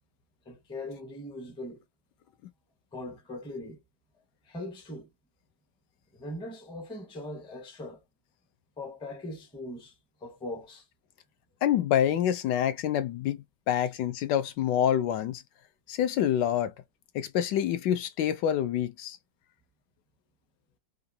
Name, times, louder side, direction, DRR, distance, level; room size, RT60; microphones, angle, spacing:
voice 1, 0.5-1.8 2.9-3.8 4.4-5.1 6.1-8.0 8.8-9.9 10.2-10.8, left 1 dB, 5° left, 0.5 m, -40 dB
voice 2, 11.6-15.4 15.9-16.7 17.1-19.2, left 10 dB, 75° left, 1.2 m, -27 dB
3.7 x 2.5 x 2.7 m
omnidirectional pair, 2.0 m